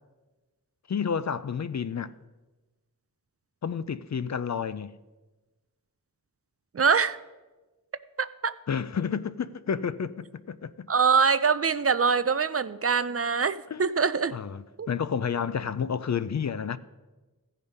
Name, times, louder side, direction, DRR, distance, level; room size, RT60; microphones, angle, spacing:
voice 1, 0.9-2.1 3.6-4.9 8.7-10.7 13.7-13.9 14.3-16.8, left 7 dB, 50° left, 0.4 m, -30 dB
voice 2, 6.7-7.2 8.2-8.5 10.9-14.3 14.8-14.9, right 5 dB, 40° right, 0.4 m, -24 dB
15.0 x 5.1 x 5.4 m
wide cardioid pair, 50°, 35 cm